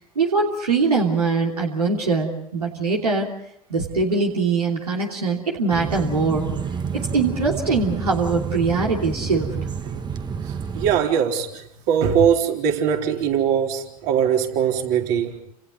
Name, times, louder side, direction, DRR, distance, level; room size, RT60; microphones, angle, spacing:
voice 1, 0.1-3.3 3.7-6.5 6.9-9.5, right 4 dB, 90° right, -1 dB, 3.1 m, -22 dB
sound 1, 5.7-11.0, right 6 dB, 25° right, 1.4 m, -29 dB
voice 2, 10.4-15.4, right 8 dB, 55° right, 2 dB, 4.0 m, -21 dB
30.0 x 27.5 x 4.1 m, 0.76 s
hypercardioid pair, 85°, 19 cm